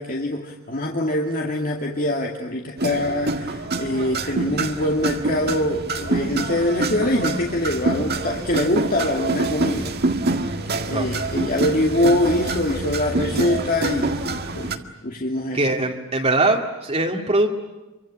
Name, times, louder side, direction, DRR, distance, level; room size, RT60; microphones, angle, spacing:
voice 1, 0.0-9.9 10.4-10.5 10.9-15.7, left 1 dB, 45° left, 1 dB, 2.3 m, -24 dB
sound 1, 2.8-14.8, right 2 dB, 50° right, 1.9 m, -26 dB
voice 2, 15.5-17.5, right 2 dB, 30° right, 1 dB, 2.2 m, -21 dB
27.5 x 24.5 x 8.7 m, 1.1 s
head